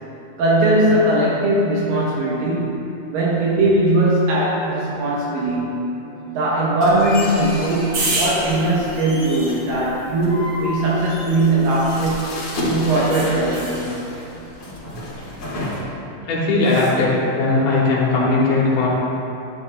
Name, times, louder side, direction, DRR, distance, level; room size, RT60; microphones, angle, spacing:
voice 1, 0.4-5.8 6.3-12.3 12.7-14.0, right 1 dB, 75° right, -6 dB, 2.7 m, -19 dB
sound 1, 6.8-15.8, left 1 dB, 45° left, 2.4 m, -31 dB
sound 2, 7.9-12.3 13.1-13.9 16.6-17.0, right 2 dB, 60° right, 2.4 m, -30 dB
voice 2, 13.7-14.1 16.2-18.9, left 3 dB, 85° left, -6 dB, 2.9 m, -19 dB
9.9 x 9.4 x 2.3 m, 2.9 s
omnidirectional pair, 4.1 m